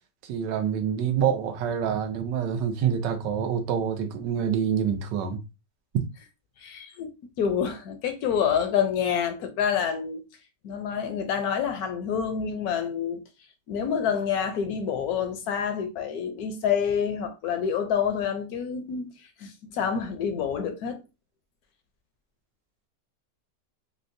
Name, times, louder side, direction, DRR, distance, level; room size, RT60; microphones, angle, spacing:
voice 1, 0.2-5.4, right 8 dB, 90° right, 1.3 m, -26 dB
voice 2, 6.6-7.1 7.4-10.2 10.6-13.2 13.7-19.1 19.4-21.0, left 7 dB, 70° left, 1.0 m, -27 dB
4.4 x 2.1 x 2.5 m
omnidirectional pair, 1.8 m